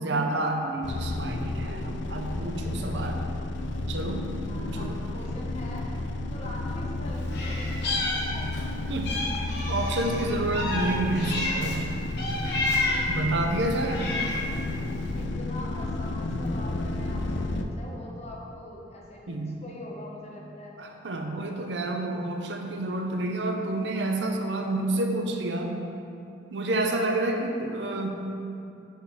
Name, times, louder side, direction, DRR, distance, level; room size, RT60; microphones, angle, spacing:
voice 1, 0.0-3.2 3.9-4.3 4.6-5.0 8.9-9.2 9.7-11.9 13.1-14.1 19.3-19.6 20.8-25.8 26.5-28.3, right 2 dB, 75° right, 3 dB, 0.7 m, -29 dB
sound 1, 0.8-17.6, left 2 dB, 85° left, 0.5 m, -32 dB
voice 2, 4.5-5.9 6.3-8.5 15.1-20.8, left 1 dB, 40° left, -3 dB, 1.2 m, -43 dB
Meow, 7.3-8.7 9.0-11.8 12.2-13.2 13.7-14.5, left 2 dB, 65° left, 1.3 m, -30 dB
10.5 x 4.4 x 3.6 m, 2.6 s
head